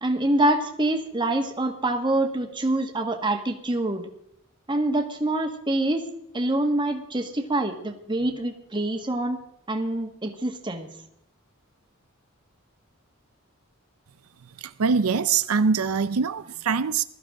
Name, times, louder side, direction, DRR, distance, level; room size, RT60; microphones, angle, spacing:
voice 1, 0.0-4.1 4.7-6.1 6.3-9.4 9.7-10.9, right 1 dB, 20° right, 1.7 m, -25 dB
voice 2, 14.4-17.0, right 5 dB, 90° right, 0.5 m, -24 dB
21.0 x 13.0 x 3.8 m
head